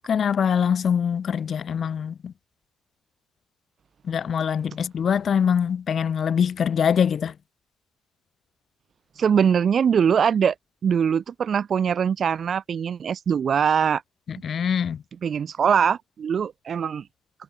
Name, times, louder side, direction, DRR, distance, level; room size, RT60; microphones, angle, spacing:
voice 1, 0.1-2.3 4.1-7.3 14.3-15.0, left 7 dB, 55° left, 0.3 m, -23 dB
voice 2, 9.2-10.5 10.8-14.0 15.2-17.0, right 7 dB, 50° right, 0.3 m, -22 dB
cardioid pair, 90°, 0 cm